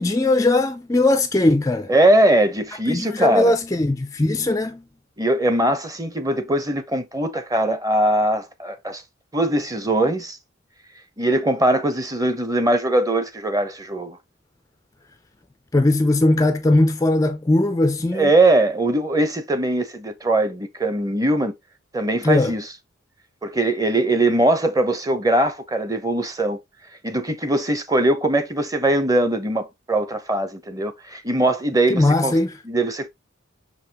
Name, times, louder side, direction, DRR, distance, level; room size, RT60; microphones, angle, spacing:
voice 1, 0.0-1.9 2.9-4.8 15.7-18.3 22.2-22.5 31.9-32.5, left 2 dB, 15° left, 0.4 m, -19 dB
voice 2, 1.9-3.5 5.2-9.0 9.3-10.4 11.2-14.2 18.1-21.5 21.9-22.7 23.4-26.6 27.0-32.3 32.6-33.1, right 1 dB, 15° right, 0.8 m, -21 dB
6.1 x 5.5 x 2.9 m
head